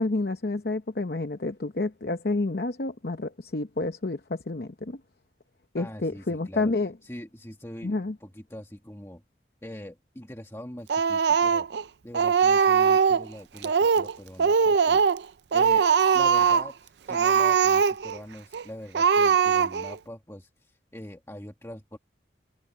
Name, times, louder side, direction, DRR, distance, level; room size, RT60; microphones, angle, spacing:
voice 1, 0.0-5.0 5.7-6.9 7.8-8.2, left 2 dB, 55° left, 0.8 m, -29 dB
voice 2, 5.8-6.7 7.0-9.2 9.6-11.7 12.0-15.9 16.1-22.0, equal, 15° left, 1.7 m, -43 dB
Speech, 10.9-11.8 12.1-13.3 13.6-14.1 14.4-15.2 15.5-16.7 17.1-18.2 18.5-18.6 18.9-20.0, right 6 dB, 70° right, 0.4 m, -21 dB
head